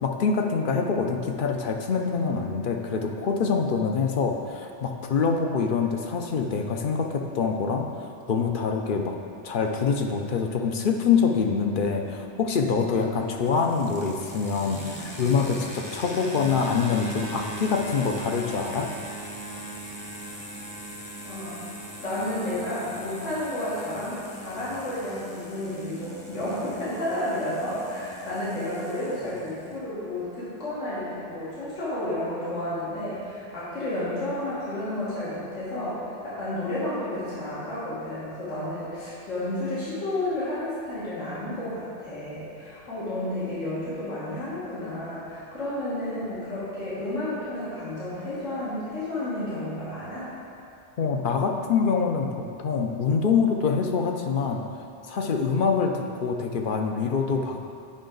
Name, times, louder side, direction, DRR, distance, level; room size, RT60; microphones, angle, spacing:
voice 1, 0.0-7.9 8.3-9.2 9.4-18.9 51.0-54.6 55.1-57.7, left 5 dB, 55° left, 3 dB, 0.7 m, -25 dB
sound 1, 13.0-29.8, equal, 20° left, 0.8 m, -40 dB
voice 2, 21.2-21.6 22.0-50.3, left 1 dB, 85° left, -10 dB, 2.0 m, -31 dB
8.7 x 5.5 x 3.8 m, 2.5 s
omnidirectional pair, 1.2 m